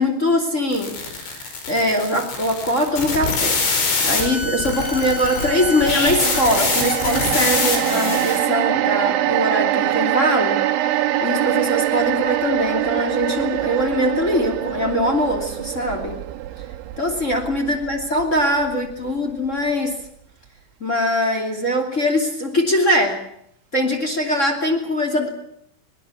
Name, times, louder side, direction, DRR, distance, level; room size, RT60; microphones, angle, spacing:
voice 1, 0.0-16.2 17.0-20.0 20.8-23.2 23.7-25.3, left 1 dB, 20° left, 2 dB, 2.2 m, -22 dB
sound 1, 0.7-8.5, left 4 dB, 60° left, 6.9 m, -24 dB
sound 2, 4.8-19.1 19.5-19.6, right 13 dB, 75° right, 3.4 m, -24 dB
22.0 x 20.5 x 8.4 m, 0.68 s
omnidirectional pair, 5.9 m